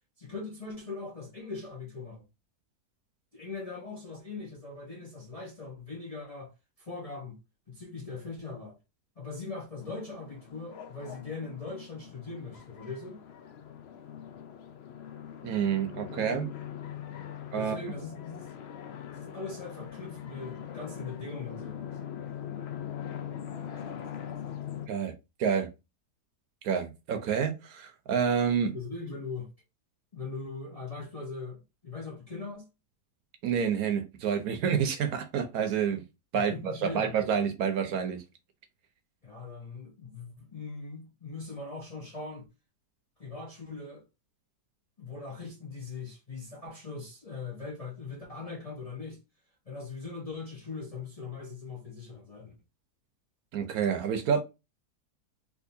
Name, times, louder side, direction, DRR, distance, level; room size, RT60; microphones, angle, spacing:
voice 1, 0.2-2.2 3.3-6.5 6.8-7.4 7.7-8.8 9.2-13.2 17.5-18.5 19.1-22.0 28.7-29.5 30.1-32.7 36.4-37.1 39.2-42.5 43.2-44.0 45.0-49.2 49.7-52.6, left 4 dB, 35° left, 0.6 m, -40 dB
sound 1, 9.8-24.9, left 9 dB, 85° left, 0.5 m, -42 dB
voice 2, 15.4-16.5 17.5-17.8 24.9-25.1 25.4-25.7 26.6-28.7 33.4-36.0 36.3-38.2 53.5-54.4, right 7 dB, 70° right, 1.1 m, -28 dB
3.7 x 2.8 x 2.6 m
omnidirectional pair, 1.7 m